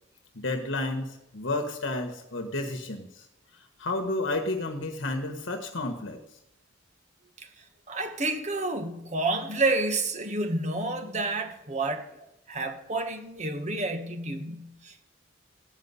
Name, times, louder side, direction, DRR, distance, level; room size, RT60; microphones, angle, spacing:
voice 1, 0.3-3.2 3.5-6.2, left 2 dB, 70° left, 1.3 m, -31 dB
voice 2, 7.9-12.1 12.5-15.0, right 2 dB, 35° right, 1.3 m, -29 dB
15.5 x 5.5 x 9.6 m
head